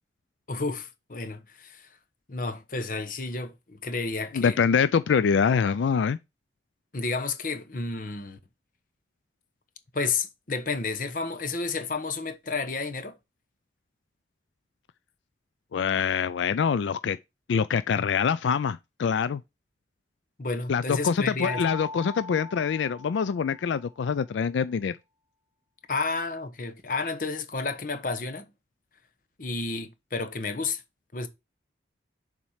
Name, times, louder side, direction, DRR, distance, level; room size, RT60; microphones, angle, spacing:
voice 1, 0.5-1.9 2.3-4.6 6.9-8.4 9.9-13.2 20.4-21.6 25.9-28.4 29.4-30.8 31.1-31.3, left 3 dB, 50° left, 1.0 m, -31 dB
voice 2, 4.3-6.2 15.7-17.2 17.5-19.4 20.7-24.9, left 6 dB, 90° left, 0.4 m, -25 dB
Mallet percussion, 21.4-23.9, left 2 dB, 30° right, 1.3 m, -40 dB
7.1 x 4.3 x 4.9 m
head